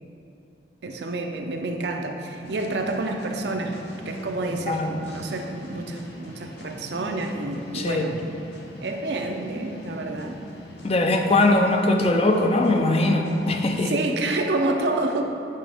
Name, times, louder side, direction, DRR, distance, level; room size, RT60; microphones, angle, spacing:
voice 1, 0.8-8.3 8.8-10.4 13.8-15.2, right 2 dB, 65° right, 3 dB, 0.6 m, -28 dB
sound 1, 2.4-13.8, equal, 65° left, 1.0 m, -42 dB
voice 2, 4.7-5.0 7.7-8.0 10.8-14.0, left 2 dB, 35° left, 3 dB, 0.5 m, -21 dB
8.5 x 5.9 x 3.5 m, 2.7 s
head